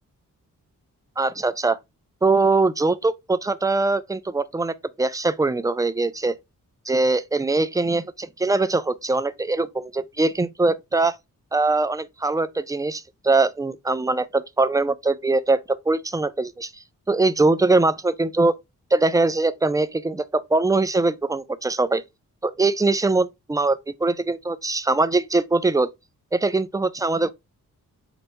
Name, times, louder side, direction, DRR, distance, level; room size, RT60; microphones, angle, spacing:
voice 1, 1.2-1.8 2.2-6.3 6.9-11.2 11.5-16.7 17.1-18.6 18.9-22.0 22.4-25.9 26.3-27.3, right 3 dB, 10° right, 0.3 m, -22 dB
4.4 x 2.6 x 3.1 m
cardioid pair, 60°, 34 cm